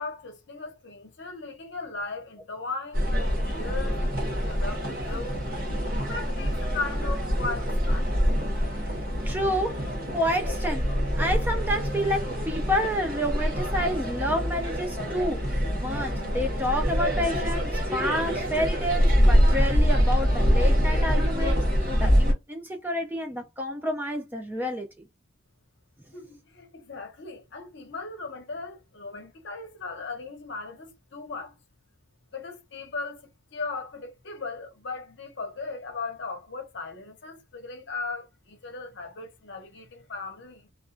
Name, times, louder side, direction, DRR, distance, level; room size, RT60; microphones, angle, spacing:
voice 1, 0.0-5.5 6.0-8.2 26.1-31.6 32.3-40.7, left 3 dB, 55° left, 0.7 m, -37 dB
sound 1, 2.9-22.3, equal, 45° right, 0.9 m, -25 dB
voice 2, 9.2-9.8 10.1-10.9 11.2-21.7 22.0-24.9, equal, 10° right, 0.3 m, -29 dB
2.3 x 2.2 x 2.4 m
head